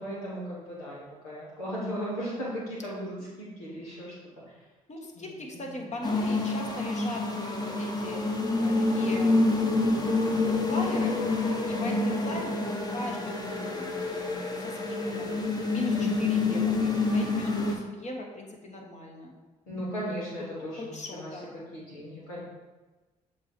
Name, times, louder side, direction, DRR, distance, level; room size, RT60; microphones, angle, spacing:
voice 1, 0.0-4.1 5.1-6.0 11.7-12.4 15.9-16.2 19.7-22.4, equal, 85° left, -8 dB, 1.5 m, -37 dB
voice 2, 4.9-8.2 8.6-11.2 11.5-12.5 12.9-15.4 15.7-19.4 20.5-21.5, left 1 dB, 40° left, 0 dB, 1.4 m, -39 dB
sound 1, 6.0-17.8, left 3 dB, 20° left, 1.2 m, -27 dB
6.8 x 3.1 x 4.5 m, 1.2 s
hypercardioid pair, 45°, 18 cm